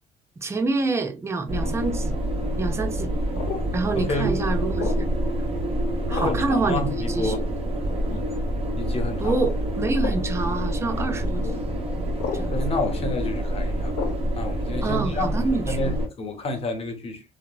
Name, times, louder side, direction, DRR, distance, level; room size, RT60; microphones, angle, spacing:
voice 1, 0.4-2.2 2.6-3.2 3.7-5.1 6.1-6.8 7.1-7.3 9.2-11.6 12.3-12.6 14.8-15.9, right 3 dB, 15° right, 0.5 m, -27 dB
sound 1, 1.5-16.1, equal, 35° right, 0.9 m, -27 dB
sound 2, 1.6-1.9 3.3-3.7 4.8-5.1 6.1-6.5 7.2-7.5 8.1-8.3 9.4-9.6 10.0-10.2 11.4-11.6 12.2-12.5 13.9-14.2, left 6 dB, 90° left, 0.8 m, -33 dB
voice 2, 3.9-4.3 6.1-7.4 8.8-9.4 12.3-17.2, left 2 dB, 35° left, 0.8 m, -30 dB
sound 3, 4.2-9.8, right 5 dB, 75° right, 0.8 m, -37 dB
2.8 x 2.8 x 2.2 m
cardioid pair, 110°, 17 cm